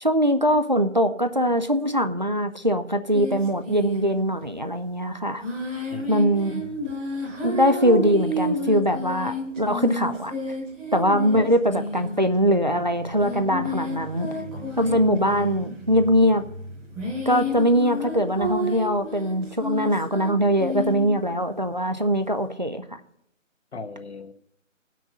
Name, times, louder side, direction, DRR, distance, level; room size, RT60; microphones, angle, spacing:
voice 1, 0.0-5.4 6.1-6.6 7.4-10.3 10.9-14.3 14.8-16.4 17.3-22.8, equal, 35° right, 9 dB, 0.4 m, -22 dB
sound 1, 3.1-4.4 5.4-21.3, left 1 dB, 5° right, 1.1 m, -32 dB
voice 2, 5.9-6.8 11.3-11.6 23.7-24.3, left 3 dB, 55° left, 8 dB, 0.9 m, -38 dB
17.5 x 6.2 x 5.4 m, 0.75 s
figure-of-eight pair, 170°, 39 cm